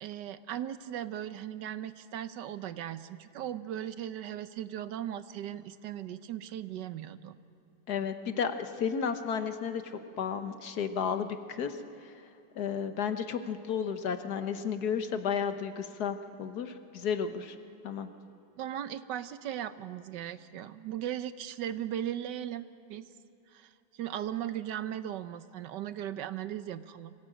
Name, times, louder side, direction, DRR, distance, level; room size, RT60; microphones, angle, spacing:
voice 1, 0.0-7.4 18.6-23.0 23.5-27.1, right 11 dB, 80° right, 12 dB, 1.4 m, -38 dB
voice 2, 7.9-11.8 12.0-12.1 12.5-17.6 17.8-18.1, left 7 dB, 65° left, 8 dB, 1.6 m, -33 dB
25.0 x 17.5 x 8.8 m, 2.8 s
omnidirectional pair, 1.8 m